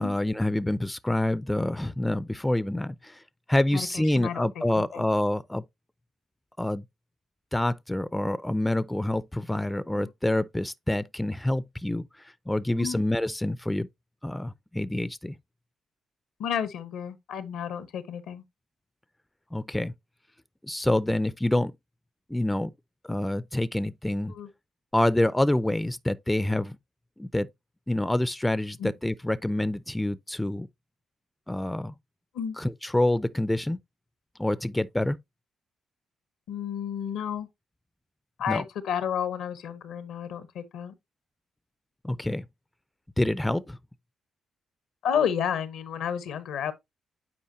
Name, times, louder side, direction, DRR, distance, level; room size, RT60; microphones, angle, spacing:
voice 1, 0.0-3.2 3.5-5.6 6.6-6.8 7.5-12.1 12.5-13.9 14.2-15.4 19.5-19.9 20.6-21.7 22.3-22.7 23.0-24.3 24.9-26.8 27.2-27.5 27.9-30.7 31.5-31.9 32.6-33.8 34.4-35.2 38.5-38.6 42.0-42.4 43.2-43.8, left 1 dB, 10° left, 0.5 m, -27 dB
voice 2, 3.7-4.5 4.8-5.0 9.9-10.1 12.8-13.0 16.4-18.4 24.3-24.5 28.8-28.9 32.3-32.6 36.5-37.5 38.4-40.9 45.0-46.7, left 8 dB, 75° left, 0.9 m, -31 dB
8.6 x 4.5 x 2.7 m
supercardioid pair, 50°, 0 cm